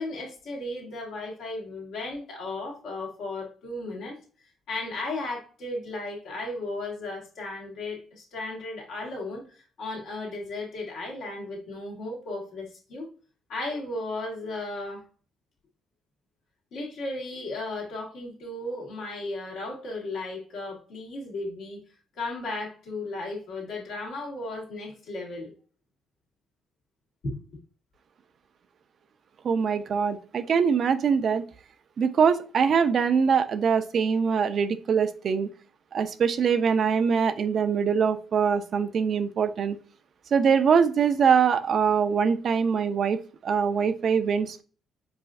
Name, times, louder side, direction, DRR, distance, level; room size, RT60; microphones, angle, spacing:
voice 1, 0.0-4.2 4.7-13.1 13.5-15.0 16.7-21.8 22.1-25.5 27.2-27.4, left 2 dB, 80° left, -2 dB, 1.5 m, -35 dB
voice 2, 29.4-31.4 32.0-35.5 35.9-39.8 40.3-44.6, right 6 dB, 55° right, 11 dB, 0.4 m, -23 dB
4.7 x 2.5 x 2.4 m, 0.38 s
cardioid pair, 90°, 0 cm